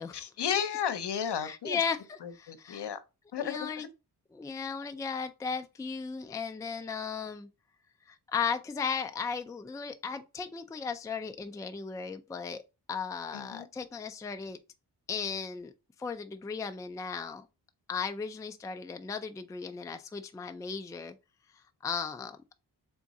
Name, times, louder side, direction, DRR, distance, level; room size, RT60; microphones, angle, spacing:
voice 1, 0.1-1.8 2.2-3.0 3.3-3.9 13.3-13.7, left 8 dB, 75° left, 0.7 m, -33 dB
voice 2, 1.4-2.8 3.4-3.9 4.3-7.5 8.1-12.6 12.9-14.6 15.1-15.7 16.0-17.5 17.9-21.2 21.5-22.6, left 6 dB, 10° left, 0.3 m, -36 dB
3.6 x 3.6 x 4.1 m
wide cardioid pair, 155°, 41 cm